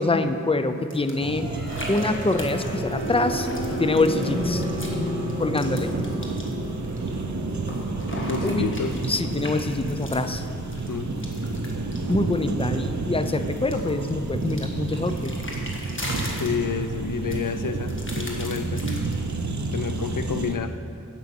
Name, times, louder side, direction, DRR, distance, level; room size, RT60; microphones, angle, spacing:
voice 1, 0.0-1.5 1.9-4.6 5.4-5.9 8.2-8.7 9.1-10.5 12.1-15.3, left 2 dB, 15° left, 9 dB, 0.5 m, -25 dB
sound 1, 0.9-1.1 1.7-5.0 5.3-7.1 7.5-12.8 13.2-16.9 17.3-19.3, left 1 dB, 35° left, 1.6 m, -39 dB
sound 2, 1.2-20.6, right 3 dB, 60° right, 0.7 m, -30 dB
sound 3, 1.3-13.2, equal, 20° right, 2.9 m, -33 dB
voice 2, 8.3-9.0 10.9-11.1 16.4-18.8 19.7-20.8, left 6 dB, 70° left, 9 dB, 0.6 m, -29 dB
8.6 x 8.3 x 6.0 m, 2.5 s
wide cardioid pair, 45°, 33 cm